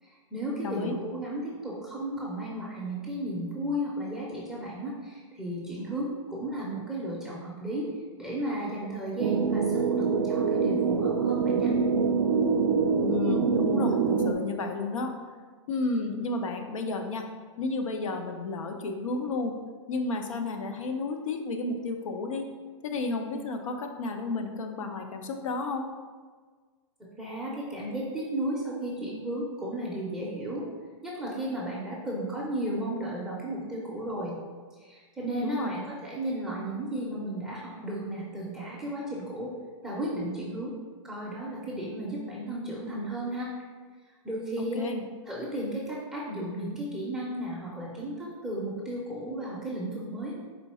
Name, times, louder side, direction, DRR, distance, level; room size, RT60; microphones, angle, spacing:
voice 1, 0.0-7.9 8.2-11.7 27.0-30.7 31.0-34.4 34.8-39.5 39.8-40.8 41.0-43.5 44.2-44.9 45.3-50.3, right 1 dB, 5° right, -6 dB, 0.5 m, -34 dB
voice 2, 0.6-1.0 13.0-15.2 15.7-17.3 17.6-19.6 19.9-22.5 22.8-25.9 35.4-35.8 44.7-45.0, left 3 dB, 85° left, 4 dB, 0.7 m, -32 dB
sound 1, 9.2-14.3, right 5 dB, 80° right, 0.4 m, -25 dB
4.4 x 2.7 x 4.2 m, 1.5 s
hypercardioid pair, 150°, 16 cm